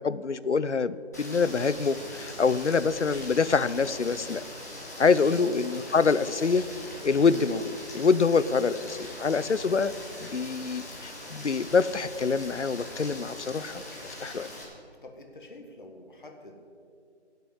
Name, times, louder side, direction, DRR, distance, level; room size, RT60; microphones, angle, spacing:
voice 1, 0.0-4.4 5.0-6.6 7.0-9.9 10.2-13.8 14.2-14.5, left 5 dB, 80° left, 16 dB, 0.7 m, -25 dB
Rain, 1.1-14.6, left 1 dB, 15° left, 1.3 m, -41 dB
voice 2, 15.0-16.6, left 2 dB, 45° left, 3 dB, 1.8 m, -47 dB
16.0 x 6.9 x 7.8 m, 2.3 s
figure-of-eight pair, 165°, 34 cm